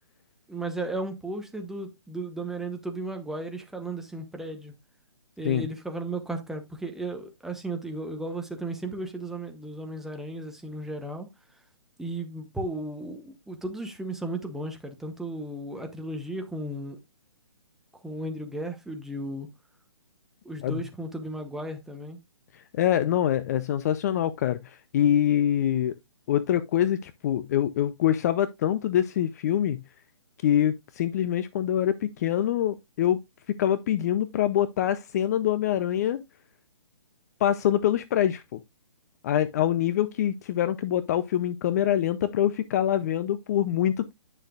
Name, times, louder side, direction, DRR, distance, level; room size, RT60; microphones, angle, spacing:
voice 1, 0.5-4.7 5.4-11.3 12.0-17.0 18.0-19.5 20.4-22.2, right 2 dB, ahead, 0.9 m, -35 dB
voice 2, 22.5-25.9 26.3-29.8 30.4-33.2 33.5-36.2 37.4-38.6 39.2-44.1, left 11 dB, 30° left, 0.4 m, -25 dB
9.8 x 6.5 x 2.4 m
hypercardioid pair, 150°, 16 cm